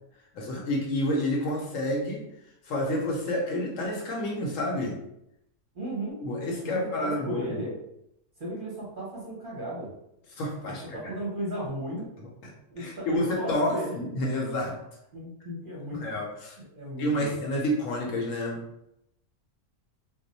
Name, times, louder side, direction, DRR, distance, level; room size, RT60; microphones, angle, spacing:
voice 1, 0.3-2.3 2.6-5.0 6.2-7.6 10.3-11.0 12.4-12.5 12.8-14.8 16.0-16.6 17.0-18.6, left 1 dB, 70° left, 0 dB, 0.9 m, -29 dB
voice 2, 5.7-6.2 6.6-7.7 8.4-9.9 10.6-12.1 12.7-14.0 15.1-16.0 16.7-17.3, right 1 dB, 45° right, -6 dB, 0.8 m, -35 dB
2.4 x 2.1 x 3.8 m, 0.82 s
omnidirectional pair, 1.6 m